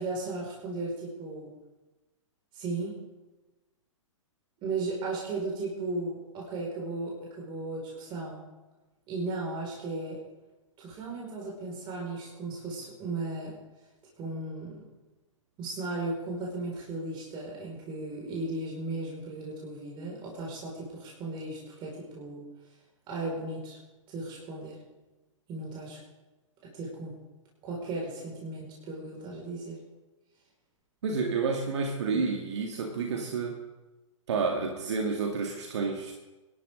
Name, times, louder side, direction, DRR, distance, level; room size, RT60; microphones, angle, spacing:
voice 1, 0.0-1.5 2.5-3.0 4.6-8.5 9.1-10.2 10.8-13.5 14.2-14.9 15.6-22.4 23.1-23.8 24.1-24.8 25.5-26.0 26.6-27.2 27.6-29.8, right 2 dB, 30° right, -3 dB, 5.4 m, -36 dB
voice 2, 31.0-33.6 34.3-36.1, right 4 dB, 55° right, 2 dB, 2.0 m, -30 dB
25.5 x 12.0 x 3.9 m, 1.1 s
figure-of-eight pair, 110°, 17 cm